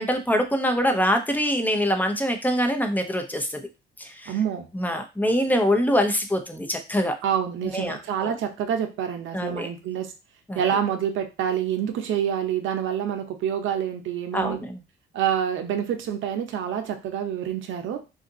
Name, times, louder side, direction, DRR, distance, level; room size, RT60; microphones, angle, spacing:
voice 1, 0.0-3.6 4.0-4.3 4.7-7.1 7.7-8.4 9.3-9.7 10.5-10.7 14.3-14.8, equal, 10° left, 5 dB, 0.7 m, -24 dB
voice 2, 4.3-4.7 7.2-10.1 10.5-14.6 15.1-18.0, right 9 dB, 80° right, 6 dB, 0.7 m, -27 dB
2.7 x 2.5 x 3.7 m, 0.28 s
cardioid pair, 90°, 20 cm